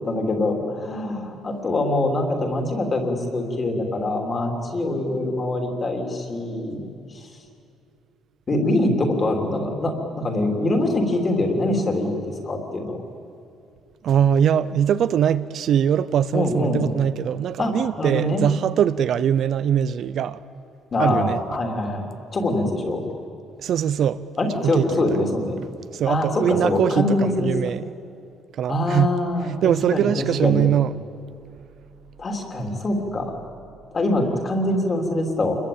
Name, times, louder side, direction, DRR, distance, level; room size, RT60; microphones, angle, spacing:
voice 1, 0.0-7.3 8.5-13.0 16.3-16.9 17.6-18.4 20.9-23.0 24.4-25.6 26.1-27.7 28.7-30.7 32.2-33.3 33.9-35.6, left 2 dB, 25° left, 3.2 m, -24 dB
voice 2, 14.0-20.4 21.0-21.4 23.6-24.2 24.6-25.1 25.9-27.9 28.6-29.1 29.6-31.1, right 9 dB, 55° right, 0.6 m, -21 dB
28.0 x 22.0 x 8.7 m
cardioid pair, 160°, 0 cm